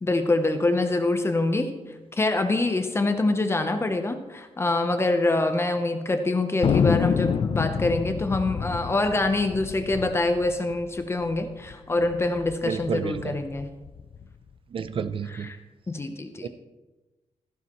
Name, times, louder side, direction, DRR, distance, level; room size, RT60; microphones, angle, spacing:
voice 1, 0.0-1.7 2.2-13.7 15.3-15.6 15.9-16.5, left 2 dB, 20° left, 7 dB, 0.7 m, -25 dB
Thunder, 6.6-11.5 11.7-11.8 12.0-12.6 13.1-14.2, left 7 dB, 45° left, 0.4 m, -27 dB
voice 2, 12.6-13.3 14.7-15.5 16.4-16.5, right 6 dB, 50° right, 12 dB, 0.5 m, -30 dB
14.5 x 12.0 x 3.1 m, 1.1 s
wide cardioid pair, 170°, 12 cm